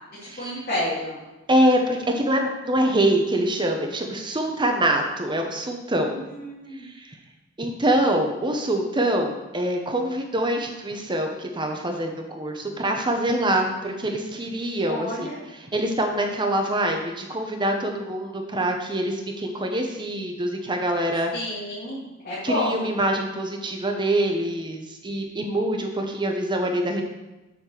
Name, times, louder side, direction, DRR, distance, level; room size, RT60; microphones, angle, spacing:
voice 1, 0.2-1.2 6.1-6.9 14.9-15.4 21.3-22.9, left 1 dB, 50° left, -11 dB, 2.8 m, -30 dB
voice 2, 1.5-6.2 6.8-7.2 7.6-15.3 15.7-21.3 22.4-27.0, right 1 dB, 25° right, 3 dB, 1.0 m, -25 dB
7.3 x 4.4 x 6.7 m, 1.1 s
head